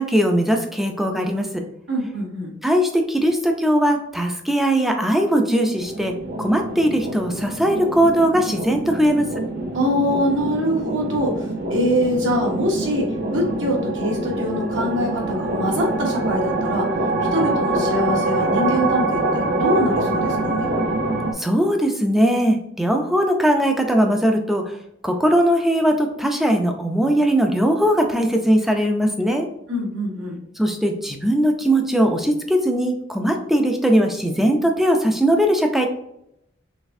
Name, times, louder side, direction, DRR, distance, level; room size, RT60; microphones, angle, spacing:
voice 1, 0.0-1.6 2.6-9.3 21.4-24.6 25.0-29.5 30.6-35.9, equal, ahead, 3 dB, 0.4 m, -19 dB
voice 2, 1.9-2.5 9.7-11.4 11.7-16.9 17.3-20.7 29.7-30.4, equal, 70° right, -1 dB, 1.1 m, -23 dB
sound 1, 5.8-21.3, right 2 dB, 55° right, 0.6 m, -25 dB
4.0 x 3.3 x 2.6 m, 0.77 s
head